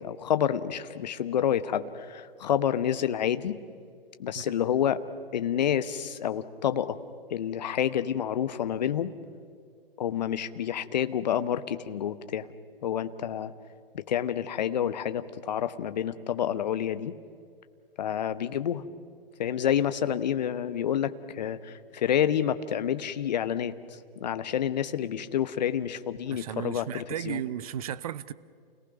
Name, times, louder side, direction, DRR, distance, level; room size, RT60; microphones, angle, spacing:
voice 1, 0.0-3.6 4.2-5.0 5.3-7.0 7.3-9.1 10.0-12.5 12.8-13.5 13.9-17.1 18.0-18.8 19.4-27.4, left 9 dB, 45° left, 1.1 m, -28 dB
voice 2, 26.3-28.3, right 10 dB, 40° right, 0.7 m, -35 dB
29.0 x 18.5 x 6.1 m
figure-of-eight pair, 120°, 30 cm